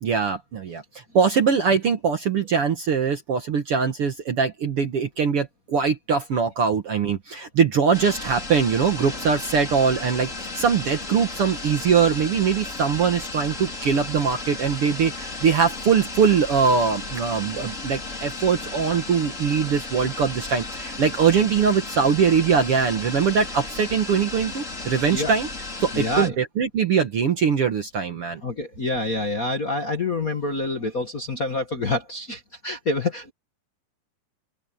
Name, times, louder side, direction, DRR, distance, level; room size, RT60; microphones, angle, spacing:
voice 1, 0.0-25.5 25.8-28.4, right 6 dB, 60° right, 1.5 m, -22 dB
sound 1, 7.9-26.3, left 3 dB, 20° left, 4.0 m, -34 dB
voice 2, 25.9-26.3 28.4-33.3, left 2 dB, 50° left, 1.0 m, -27 dB
open air
omnidirectional pair, 4.5 m